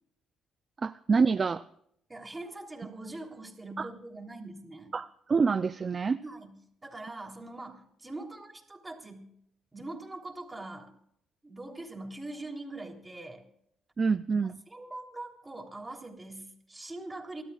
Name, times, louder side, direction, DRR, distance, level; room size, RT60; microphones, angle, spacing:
voice 1, 0.8-1.6 3.8-3.9 4.9-6.2 14.0-14.6, right 5 dB, 40° right, 12 dB, 0.5 m, -27 dB
voice 2, 2.1-4.9 6.2-6.5 6.8-9.3 9.7-10.9 11.4-13.4 14.7-17.4, right 2 dB, 15° right, 2 dB, 3.4 m, -42 dB
28.5 x 13.0 x 2.4 m, 0.71 s
cardioid pair, 90°, 0 cm